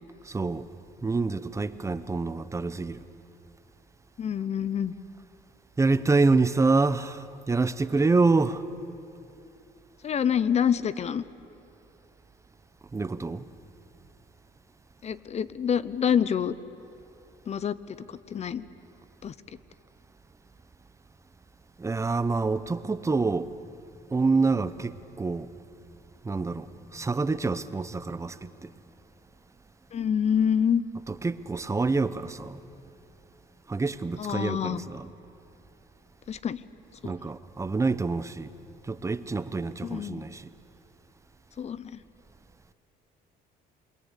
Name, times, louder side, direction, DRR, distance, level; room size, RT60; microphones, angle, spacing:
voice 1, 0.2-0.7 1.0-3.0 5.8-8.6 12.9-13.5 21.8-23.5 24.1-25.5 26.2-28.7 31.1-32.6 33.7-35.1 37.0-38.5 38.8-40.5, right 3 dB, 15° right, 0.9 m, -27 dB
voice 2, 4.2-4.9 10.0-11.2 15.0-16.5 17.5-18.6 19.2-19.3 29.9-30.8 34.2-34.8 36.3-36.6 37.0-37.1 39.8-40.2 41.6-42.0, left 8 dB, 40° left, 0.9 m, -27 dB
28.0 x 21.5 x 8.4 m
cardioid pair, 110°, 17 cm